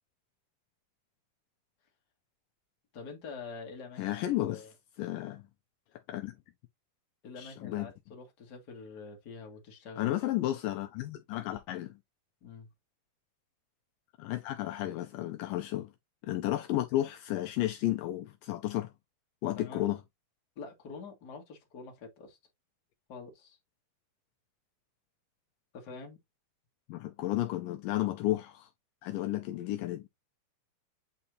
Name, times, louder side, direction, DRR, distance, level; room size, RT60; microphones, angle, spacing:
voice 1, 2.9-4.2 4.5-4.7 7.2-10.2 12.4-12.7 19.6-19.8 20.6-22.4 23.1-23.6 25.7-26.2, left 4 dB, 35° left, 1.7 m, -46 dB
voice 2, 4.0-4.7 5.0-5.4 6.1-6.4 7.4-7.9 10.0-12.0 14.2-15.9 16.2-18.9 19.4-20.0 26.9-28.7 29.0-30.1, left 14 dB, 85° left, 2.0 m, -32 dB
8.6 x 4.2 x 2.6 m
omnidirectional pair, 4.4 m